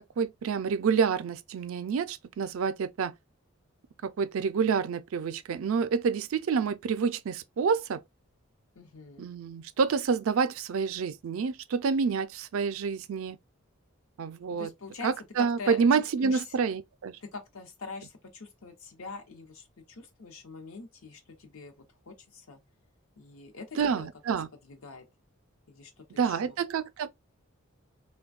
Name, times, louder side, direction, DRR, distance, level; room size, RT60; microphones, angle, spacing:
voice 1, 0.0-3.1 4.0-8.0 9.2-13.4 14.2-14.7 15.0-17.2 23.8-24.5 26.2-27.1, right 6 dB, 70° right, 0.4 m, -28 dB
voice 2, 8.7-9.2 14.5-16.6 17.2-22.6 23.2-24.1 24.6-25.1 25.7-26.6, left 4 dB, 75° left, 0.8 m, -44 dB
3.4 x 2.2 x 2.3 m
head